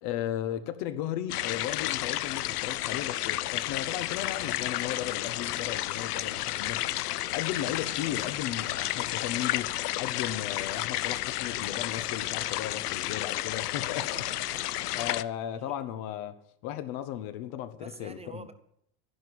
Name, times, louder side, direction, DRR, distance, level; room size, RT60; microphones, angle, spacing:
voice 1, 0.0-6.9 7.3-14.2 14.9-18.5, left 11 dB, 55° left, 1.5 m, -35 dB
sound 1, 1.3-15.2, left 15 dB, 90° left, 0.7 m, -32 dB
voice 2, 6.3-6.6 7.5-7.6 13.9-15.0 15.6-15.7 17.8-18.5, right 3 dB, 15° right, 0.8 m, -48 dB
11.0 x 11.0 x 8.7 m
supercardioid pair, 115°, 45 cm